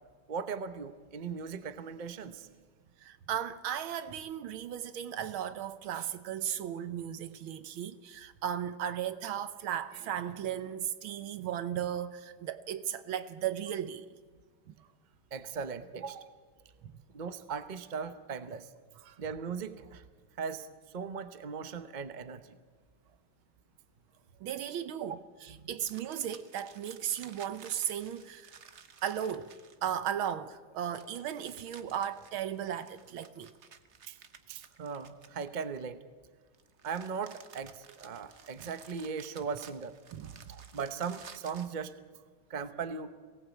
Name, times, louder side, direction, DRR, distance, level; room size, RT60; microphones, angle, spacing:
voice 1, 0.3-2.5 15.3-16.3 17.1-18.7 19.2-20.0 20.4-20.7 20.9-22.6 25.0-25.1 25.5-25.7 34.1-34.2 34.5-36.0 36.8-40.0 40.5-41.9 42.5-43.1, right 6 dB, 60° right, 0.4 m, -38 dB
voice 2, 3.0-14.1 14.7-14.8 16.1-16.2 16.8-17.0 19.0-19.2 24.4-28.5 29.0-33.5 38.6-38.7 40.1-40.5, right 9 dB, 80° right, 1.7 m, -36 dB
sound 1, 25.8-30.1 30.9-35.8 36.5-41.8, right 6 dB, 45° right, 1.0 m, -55 dB
23.0 x 18.5 x 8.4 m
omnidirectional pair, 2.3 m